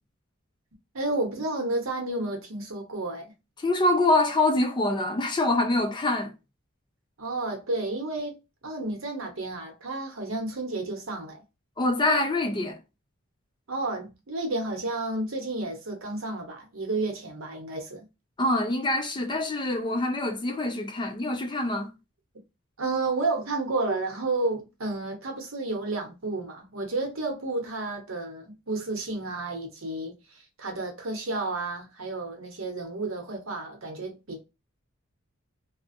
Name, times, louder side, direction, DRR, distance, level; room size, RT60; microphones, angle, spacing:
voice 1, 0.9-3.3 7.2-8.4 8.6-11.4 13.7-18.1 22.8-30.2 30.6-34.4, right 2 dB, 70° right, 1.0 m, -31 dB
voice 2, 3.6-6.3 11.8-12.8 18.4-21.9, left 2 dB, 20° left, 0.4 m, -25 dB
2.4 x 2.3 x 2.6 m
head